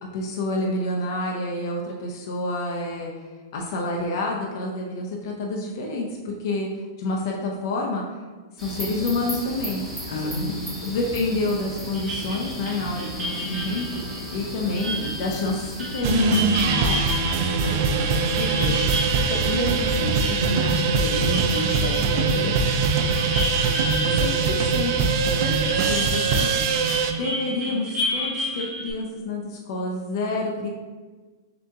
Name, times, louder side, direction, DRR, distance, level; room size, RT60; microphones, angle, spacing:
voice 1, 0.0-3.1 3.5-6.7 7.0-8.0 8.6-9.8 10.3-10.5 10.8-14.0 14.3-17.4 24.1-26.5 27.2-30.7, left 2 dB, 60° left, -1 dB, 0.6 m, -28 dB
sound 1, 8.6-16.0, equal, ahead, 1.4 m, -35 dB
voice 2, 10.1-10.7 17.6-22.9, left 1 dB, 85° left, 0 dB, 0.8 m, -30 dB
sound 2, 11.9-25.1 25.4-28.9, equal, 25° right, 1.1 m, -32 dB
sound 3, 16.0-27.1, right 4 dB, 50° right, 0.4 m, -22 dB
3.7 x 2.8 x 3.5 m, 1.4 s
hypercardioid pair, 140°, 2 cm